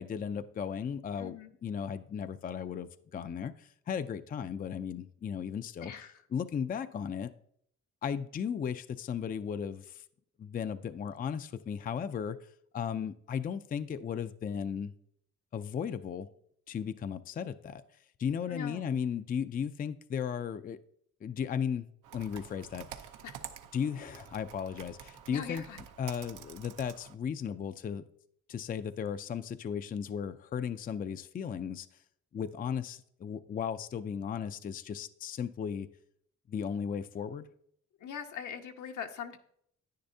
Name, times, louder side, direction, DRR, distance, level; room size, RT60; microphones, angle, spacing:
voice 1, 0.0-7.3 8.0-10.0 10.4-14.9 15.5-16.3 16.7-20.8 21.2-21.9 22.1-23.1 23.7-25.7 26.0-28.0 28.5-31.9 32.3-35.9 36.5-37.5, left 7 dB, 30° left, 11 dB, 0.4 m, -36 dB
voice 2, 1.2-1.5 5.8-6.1 18.5-18.9 23.2-23.4 25.3-25.8 38.0-39.4, left 7 dB, 75° left, 4 dB, 1.0 m, -41 dB
Computer keyboard, 22.0-27.1, right 9 dB, 85° right, 0.7 m, -49 dB
10.5 x 9.6 x 2.7 m, 0.68 s
cardioid pair, 90°, 30 cm